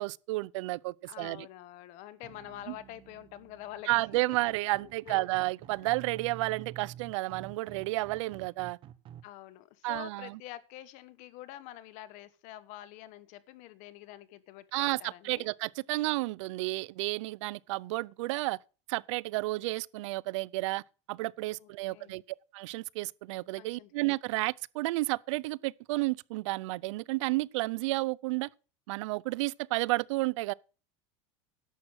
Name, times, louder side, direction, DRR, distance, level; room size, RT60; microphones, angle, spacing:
voice 1, 0.0-1.5 2.7-2.8 3.9-8.8 9.8-10.4 14.7-18.6 18.9-20.8 21.1-22.2 22.5-28.5 28.9-30.5, right 21 dB, 75° right, 0.5 m, -31 dB
voice 2, 1.1-4.5 5.0-5.2 5.8-5.9 9.2-15.5 21.6-22.2 23.6-23.9, left 14 dB, 50° left, 1.2 m, -47 dB
sound 1, 2.2-9.2, right 11 dB, 35° right, 1.0 m, -49 dB
11.0 x 7.5 x 6.2 m
supercardioid pair, 150°, 16 cm